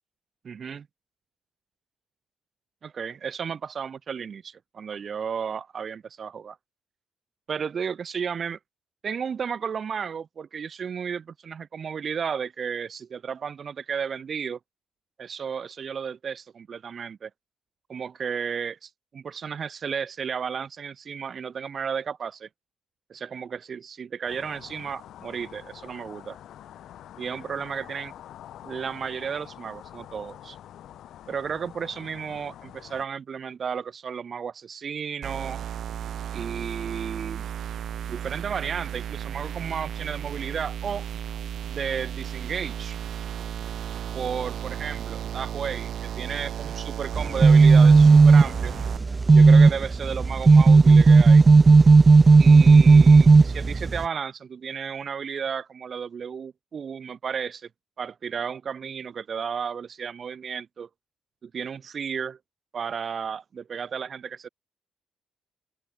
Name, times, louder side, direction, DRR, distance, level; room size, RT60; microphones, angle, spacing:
voice 1, 0.4-0.9 2.8-6.6 7.5-8.6 9.0-14.6 15.2-17.3 17.9-22.5 23.1-26.4 27.2-28.1 28.6-30.6 31.3-35.6 36.3-37.5 38.1-41.1 41.7-43.0 44.1-48.7 49.3-51.4 52.4-57.7 58.0-60.9 61.4-62.4 62.7-64.5, right 6 dB, 50° right, 1.3 m, -33 dB
sound 1, 24.3-33.0, left 11 dB, 75° left, 5.7 m, -46 dB
sound 2, 35.2-49.0, right 10 dB, 70° right, 1.6 m, -34 dB
sound 3, 47.1-54.0, right 4 dB, 30° right, 0.6 m, -14 dB
cardioid pair, 90°, 0 cm